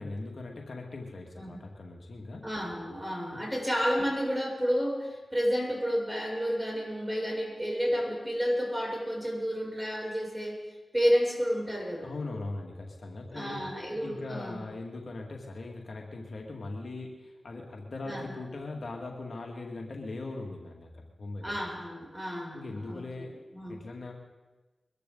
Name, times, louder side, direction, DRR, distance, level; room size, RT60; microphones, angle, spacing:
voice 1, 0.0-2.4 3.3-3.4 12.0-13.6 14.0-21.6 22.5-23.3 23.7-24.1, left 2 dB, 65° left, 1 dB, 2.2 m, -40 dB
voice 2, 2.4-10.6 10.9-12.1 13.3-14.5 18.0-18.2 21.4-23.2 23.5-23.8, equal, 5° right, -2 dB, 7.1 m, -30 dB
22.5 x 13.5 x 4.0 m, 1.2 s
cardioid pair, 40°, 0 cm